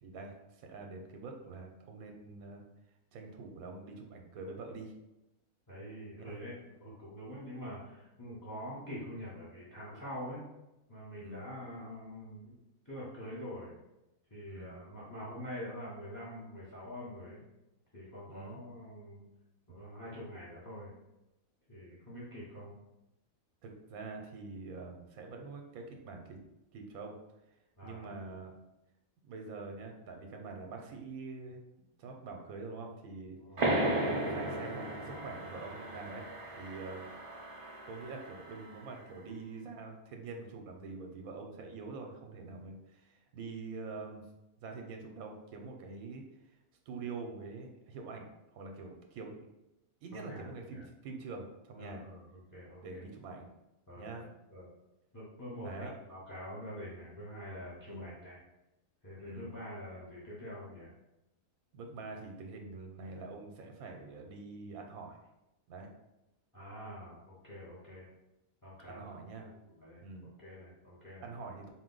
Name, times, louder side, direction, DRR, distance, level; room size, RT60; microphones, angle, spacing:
voice 1, 0.0-2.6 3.1-4.9 6.2-6.4 11.2-11.5 14.5-14.8 18.3-18.6 23.6-26.4 26.7-27.2 27.8-28.5 29.2-31.6 32.0-33.4 34.0-36.2 36.5-37.1 37.9-44.3 44.6-46.2 46.9-49.5 50.0-52.0 52.8-53.5 54.0-54.3 55.6-55.9 57.8-58.1 59.2-59.5 61.7-65.2 65.7-65.9 68.9-69.5 70.0-70.3 71.2-71.7, right 3 dB, 85° right, 3 dB, 1.1 m, -45 dB
voice 2, 5.7-10.4 10.9-13.7 14.3-17.4 17.9-19.2 19.7-20.9 21.7-22.7 27.8-28.1 33.4-33.9 50.1-50.8 51.8-53.0 53.9-54.2 54.5-54.7 55.1-58.4 59.0-60.9 66.5-68.1 68.6-69.1 69.7-71.3, equal, 20° left, -8 dB, 0.6 m, -45 dB
sound 1, 33.6-38.8, right 1 dB, 45° right, 0.4 m, -35 dB
4.3 x 2.2 x 3.7 m, 0.93 s
omnidirectional pair, 1.5 m